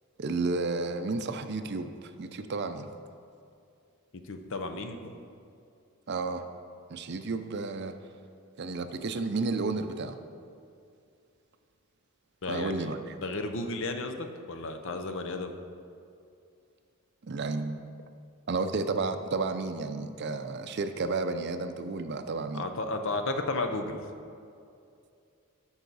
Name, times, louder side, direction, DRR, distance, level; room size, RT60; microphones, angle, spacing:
voice 1, 0.2-2.9 6.1-6.4 6.9-7.9 8.6-10.2 12.5-13.0 17.2-17.8 18.5-22.7, right 3 dB, 50° right, 8 dB, 0.5 m, -32 dB
voice 2, 4.2-5.0 12.4-12.9 13.2-15.5 22.5-24.0, left 2 dB, 60° left, 6 dB, 0.7 m, -33 dB
13.0 x 5.6 x 4.0 m, 2.5 s
head